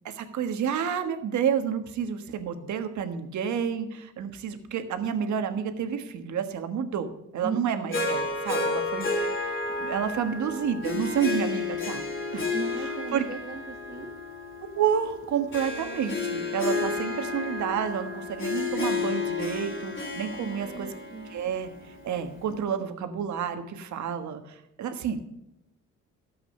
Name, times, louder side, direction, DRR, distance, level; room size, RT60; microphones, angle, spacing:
voice 1, 0.0-9.4 9.8-12.0 12.3-12.5 12.8-13.3 14.7-20.9 21.3-21.7 22.0-25.3, right 8 dB, 70° right, 8 dB, 1.5 m, -30 dB
voice 2, 7.4-8.0 12.5-14.1 20.3-21.3, right 4 dB, 30° right, 0 dB, 1.4 m, -37 dB
Harp, 7.9-22.3, left 3 dB, 40° left, 3.1 m, -31 dB
12.5 x 7.9 x 5.4 m, 0.85 s
cardioid pair, 90°, 30 cm